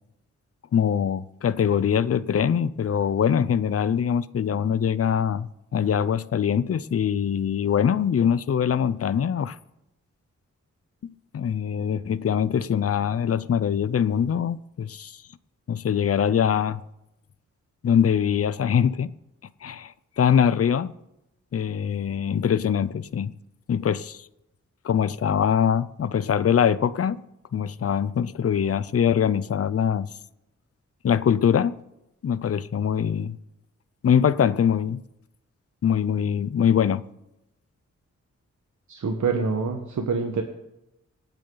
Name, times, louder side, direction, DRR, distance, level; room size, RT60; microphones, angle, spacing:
voice 1, 0.7-9.6 11.3-15.2 15.7-16.8 17.8-19.1 19.6-20.9 21.5-23.3 23.7-24.3 24.8-27.2 27.5-30.1 31.0-31.8 32.2-33.4 34.0-35.0 35.8-37.0, left 8 dB, 55° left, 0.6 m, -23 dB
voice 2, 38.9-40.4, right 4 dB, 80° right, 1.4 m, -26 dB
26.5 x 9.1 x 4.0 m
wide cardioid pair, 80°, 29 cm